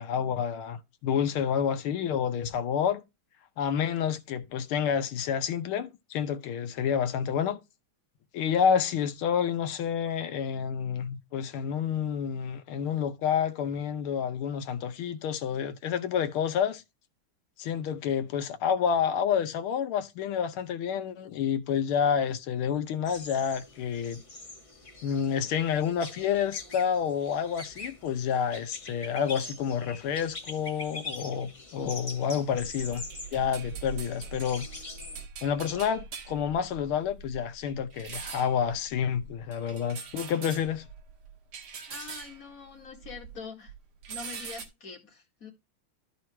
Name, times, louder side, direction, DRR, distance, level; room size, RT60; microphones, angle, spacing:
voice 1, 0.0-3.0 3.6-7.6 8.3-16.8 17.6-24.2 25.0-33.1 33.3-34.7 35.4-40.9, left 7 dB, 80° left, 1.7 m, -29 dB
sound 1, 23.0-35.2, left 3 dB, 20° left, 0.9 m, -44 dB
sound 2, 32.6-43.4 43.7-44.6, right 6 dB, 90° right, 2.2 m, -43 dB
voice 2, 41.9-43.7 44.1-45.5, left 5 dB, 40° left, 2.3 m, -44 dB
13.5 x 4.7 x 3.3 m
omnidirectional pair, 2.3 m